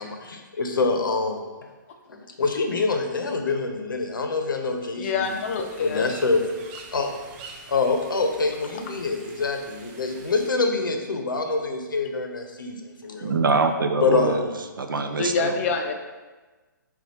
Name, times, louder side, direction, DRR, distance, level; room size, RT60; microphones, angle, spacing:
voice 1, 0.0-1.5 2.1-5.3 5.8-6.4 6.9-7.2 7.7-13.3 14.0-14.5, left 3 dB, 80° left, 4 dB, 0.7 m, -25 dB
voice 2, 5.0-6.1 15.2-15.9, left 5 dB, 45° left, 4 dB, 0.5 m, -26 dB
sound 1, 5.2-10.5, right 4 dB, 30° right, 0.5 m, -46 dB
voice 3, 13.2-14.4 14.8-15.5, right 4 dB, 90° right, 6 dB, 0.5 m, -24 dB
7.0 x 2.4 x 2.8 m, 1.3 s
hypercardioid pair, 140°, 11 cm